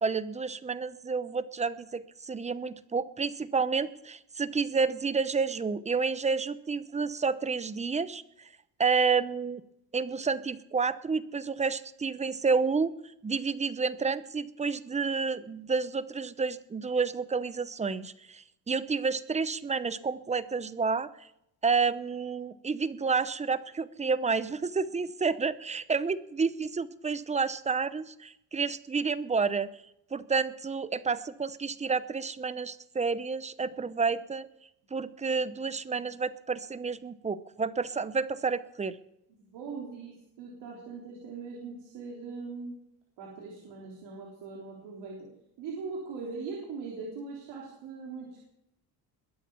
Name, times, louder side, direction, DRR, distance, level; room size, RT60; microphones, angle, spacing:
voice 1, 0.0-8.5 8.8-9.6 9.9-12.9 13.2-21.1 21.6-29.7 30.1-34.5 34.9-39.0, right 5 dB, 15° right, 15 dB, 0.8 m, -30 dB
voice 2, 39.5-42.8 43.2-45.3 45.6-48.4, right 4 dB, 85° right, -2 dB, 3.7 m, -40 dB
21.5 x 8.2 x 7.2 m, 0.83 s
cardioid pair, 105°, 40 cm